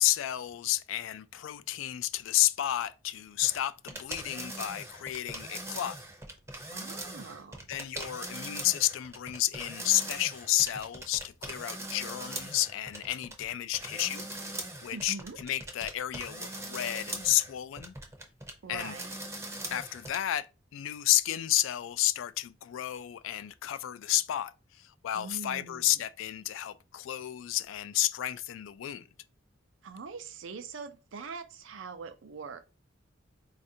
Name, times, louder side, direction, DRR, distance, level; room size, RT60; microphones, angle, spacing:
voice 1, 0.0-6.0 7.7-17.9 18.7-19.0 19.7-20.5 20.7-29.1, left 13 dB, 80° left, 0.3 m, -31 dB
sound 1, 3.4-20.2, right 1 dB, 15° right, 0.6 m, -41 dB
voice 2, 6.7-7.7 14.9-15.4 18.6-19.1 25.1-26.0 29.8-32.6, right 4 dB, 80° right, 0.5 m, -43 dB
4.2 x 2.4 x 2.7 m
head